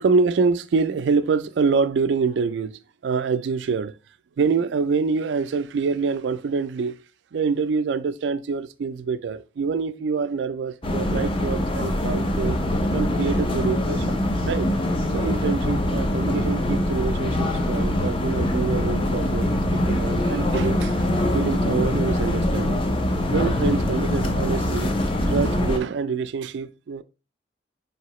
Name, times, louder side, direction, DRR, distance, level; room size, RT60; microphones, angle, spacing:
voice 1, 0.0-3.9 4.4-7.0 7.3-12.6 12.9-14.7 15.1-21.0 21.3-22.9 23.3-24.9 25.3-27.0, right 5 dB, 75° right, 0.3 m, -26 dB
sound 1, 10.8-25.8, left 1 dB, 30° left, 0.5 m, -23 dB
4.9 x 2.8 x 3.0 m
head